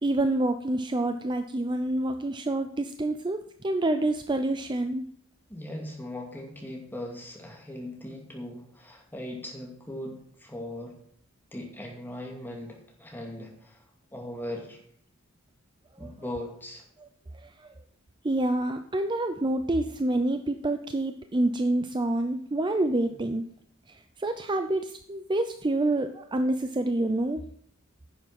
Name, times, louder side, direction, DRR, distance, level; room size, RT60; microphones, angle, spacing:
voice 1, 0.0-5.0 16.0-16.1 17.0-17.1 17.4-17.7 18.2-23.5 23.9-27.4, right 2 dB, 20° right, 8 dB, 0.5 m, -27 dB
voice 2, 5.5-11.0 11.5-13.8 14.1-14.8 16.0-16.8, left 1 dB, 10° left, 0 dB, 2.4 m, -39 dB
10.5 x 7.3 x 6.0 m, 0.62 s
head